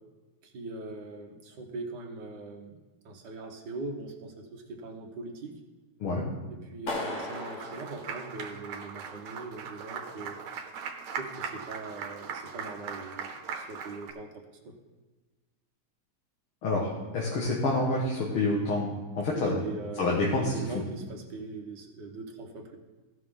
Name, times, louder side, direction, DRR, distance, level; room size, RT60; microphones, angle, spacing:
voice 1, 0.5-2.8 3.1-5.6 6.5-10.4 11.2-14.3 14.6-14.7 19.3-22.8, right 3 dB, 60° right, 1 dB, 1.8 m, -41 dB
Clapping, 6.9-8.9, left 2 dB, 55° left, 2.3 m, -37 dB
Applause, 7.1-14.1, right 6 dB, 85° right, 1.8 m, -40 dB
voice 2, 16.6-19.6 19.9-20.8, left 2 dB, 85° left, -4 dB, 2.3 m, -28 dB
16.0 x 6.1 x 3.7 m, 1.3 s
omnidirectional pair, 2.3 m